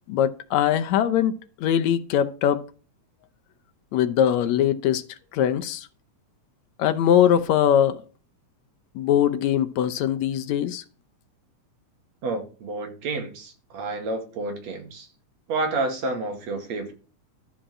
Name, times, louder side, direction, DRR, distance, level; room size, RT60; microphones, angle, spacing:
voice 1, 0.1-1.3 1.6-2.6 3.9-5.0 5.3-5.9 6.8-8.0 9.0-10.8, left 10 dB, 75° left, 2.1 m, -21 dB
voice 2, 12.2-15.1 15.5-16.9, right 2 dB, 65° right, 3.1 m, -30 dB
12.5 x 5.1 x 7.4 m
omnidirectional pair, 3.3 m